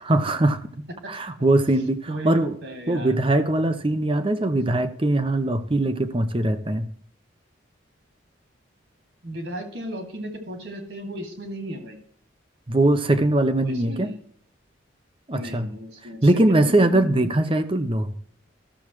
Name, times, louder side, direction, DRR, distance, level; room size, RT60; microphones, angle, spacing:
voice 1, 0.1-2.6 2.9-6.9 12.7-14.1 15.3-15.7 16.2-18.1, right 1 dB, 25° right, 10 dB, 0.7 m, -21 dB
voice 2, 2.1-3.2 9.2-12.0 13.6-14.2 15.3-17.3, equal, 60° right, 3 dB, 2.5 m, -35 dB
14.0 x 7.2 x 3.1 m, 0.64 s
head